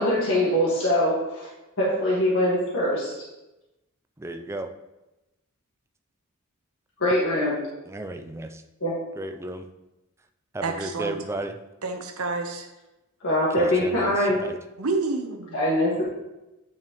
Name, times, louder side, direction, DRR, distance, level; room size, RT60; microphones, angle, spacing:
voice 1, 0.0-1.5 1.8-3.1 7.0-7.6 8.8-8.9 13.2-14.4 15.5-16.0, left 1 dB, 65° left, -6 dB, 1.7 m, -23 dB
voice 2, 4.2-4.7 7.9-8.6 9.2-9.7 10.5-11.6 13.6-14.6, right 1 dB, 15° right, 6 dB, 0.4 m, -34 dB
voice 3, 10.6-11.2 11.8-12.7 14.8-15.6, right 3 dB, 85° right, 5 dB, 1.0 m, -29 dB
8.9 x 5.8 x 3.1 m, 0.99 s
head